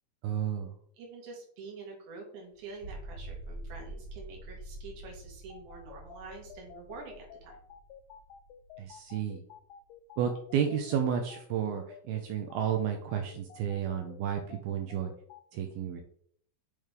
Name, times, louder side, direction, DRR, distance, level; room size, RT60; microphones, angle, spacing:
voice 1, 0.2-0.7 8.8-9.4 10.2-15.1 15.5-16.0, right 8 dB, 90° right, 4 dB, 2.2 m, -32 dB
voice 2, 1.0-7.6, right 4 dB, 75° right, 0 dB, 4.0 m, -46 dB
sound 1, 2.6-9.1, right 1 dB, 45° right, 1.1 m, -46 dB
sound 2, 5.5-15.4, left 9 dB, 90° left, 3.0 m, -51 dB
8.5 x 6.5 x 3.6 m, 0.62 s
omnidirectional pair, 5.3 m